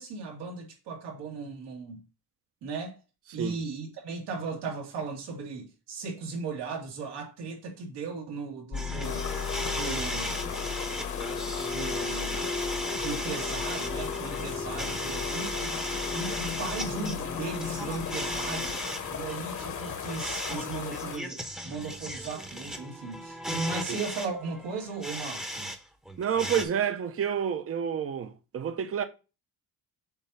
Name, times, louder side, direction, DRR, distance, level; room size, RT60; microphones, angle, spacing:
voice 1, 0.0-2.0 2.6-3.0 3.3-9.3 9.7-10.4 11.6-12.5 12.9-15.7 16.1-25.7, right 4 dB, 85° right, 2.4 m, -37 dB
sound 1, 8.7-18.8, left 5 dB, 20° left, 0.4 m, -36 dB
sound 2, 8.7-25.8 26.0-26.6, equal, ahead, 0.9 m, -37 dB
sound 3, 9.0-21.2, left 7 dB, 50° left, 1.3 m, -37 dB
voice 2, 26.2-29.0, right 8 dB, 35° right, 0.7 m, -29 dB
7.2 x 2.7 x 5.5 m
cardioid pair, 120°, 40 cm